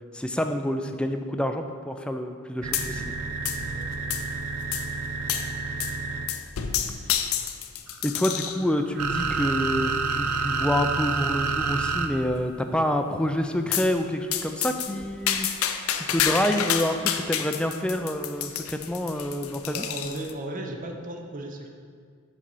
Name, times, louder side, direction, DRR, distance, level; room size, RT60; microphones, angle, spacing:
voice 1, 0.1-3.2 8.0-19.9, left 1 dB, 5° left, 6 dB, 0.3 m, -28 dB
sound 1, 2.6-6.4 7.9-12.1, right 4 dB, 90° right, 0.5 m, -29 dB
sound 2, 2.7-3.2 3.4-4.3 4.7-4.9 5.3-5.5 5.8-6.0 6.3-8.6 9.2-9.6 10.2-10.3 10.6-10.7 11.1-11.2 11.6-12.1 13.7-13.9 14.3-20.3, left 9 dB, 70° left, 0.5 m, -29 dB
voice 2, 3.7-4.1 19.7-21.7, right 1 dB, 40° right, 2 dB, 0.6 m, -36 dB
7.6 x 4.2 x 5.3 m, 2.1 s
head